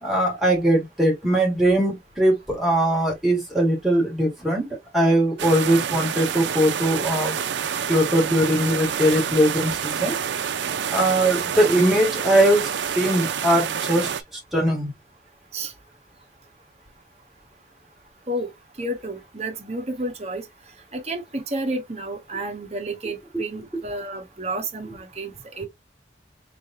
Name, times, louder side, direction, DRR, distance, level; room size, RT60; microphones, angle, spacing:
voice 1, 0.0-4.7 4.9-7.3 7.9-10.2 10.9-14.9, right 1 dB, ahead, 1.8 m, -21 dB
sound 1, 5.4-14.2, right 8 dB, 85° right, 0.5 m, -27 dB
voice 2, 18.8-20.4 20.9-25.7, right 1 dB, 35° right, 0.9 m, -31 dB
3.9 x 3.4 x 2.6 m
head